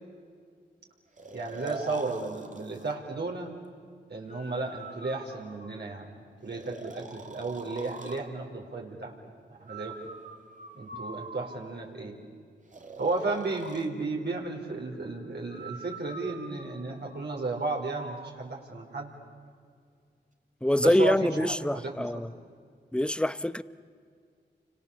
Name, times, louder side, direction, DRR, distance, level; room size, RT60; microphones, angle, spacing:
Breathing, 1.2-2.9 4.3-5.9 6.5-8.3 9.7-11.9 12.7-13.9 15.5-18.4, right 3 dB, 40° right, 2.6 m, -44 dB
voice 1, 1.3-3.5 4.1-6.1 6.4-9.1 9.6-10.0 10.7-12.1 13.0-19.1 20.8-22.1, right 3 dB, 60° right, 5.0 m, -33 dB
voice 2, 20.6-22.3 22.9-23.6, left 1 dB, 5° left, 0.9 m, -25 dB
29.5 x 25.5 x 7.3 m
cardioid pair, 45°, 19 cm